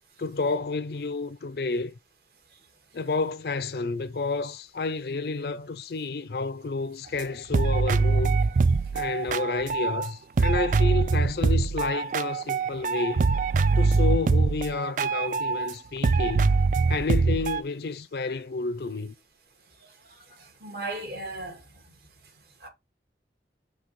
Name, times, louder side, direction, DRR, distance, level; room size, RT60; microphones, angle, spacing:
voice 1, 0.2-1.9 2.9-8.4 8.9-13.3 13.8-16.6 16.9-19.1, left 4 dB, 65° left, 0.5 m, -30 dB
sound 1, 7.2-7.3 7.5-10.1 10.4-15.7 16.0-17.6, right 4 dB, 45° right, 0.3 m, -23 dB
voice 2, 20.6-21.6 22.6-22.7, right 2 dB, 65° right, 2.2 m, -35 dB
5.2 x 3.2 x 5.5 m
head